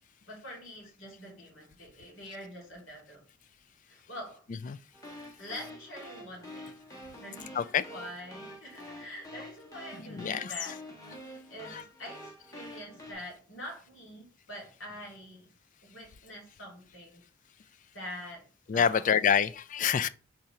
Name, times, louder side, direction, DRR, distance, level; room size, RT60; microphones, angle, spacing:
voice 1, 0.3-3.2 3.9-4.4 5.4-6.8 7.2-10.8 11.2-15.5 15.8-17.2 17.9-19.0, equal, 75° left, 2.5 m, -45 dB
sound 1, 4.9-13.1, equal, 15° left, 1.4 m, -47 dB
voice 2, 9.9-10.8 11.6-11.8 18.7-20.1, left 7 dB, 40° left, 0.3 m, -27 dB
4.5 x 3.7 x 5.6 m
head